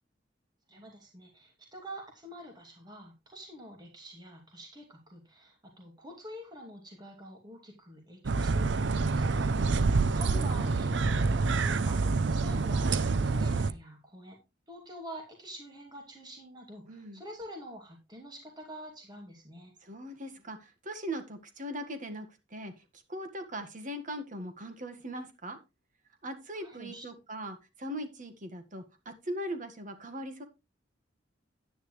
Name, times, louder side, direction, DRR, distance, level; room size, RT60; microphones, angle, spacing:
voice 1, 0.7-9.8 10.1-12.0 12.3-14.4 14.7-19.7 26.6-27.1, equal, 25° right, 1 dB, 2.6 m, -47 dB
sound 1, 8.2-13.7, right 3 dB, 70° right, 0.6 m, -27 dB
voice 2, 16.9-17.2 19.8-22.7 23.1-25.6 26.2-30.4, equal, 45° right, 8 dB, 1.7 m, -40 dB
10.5 x 10.0 x 3.2 m, 0.25 s
head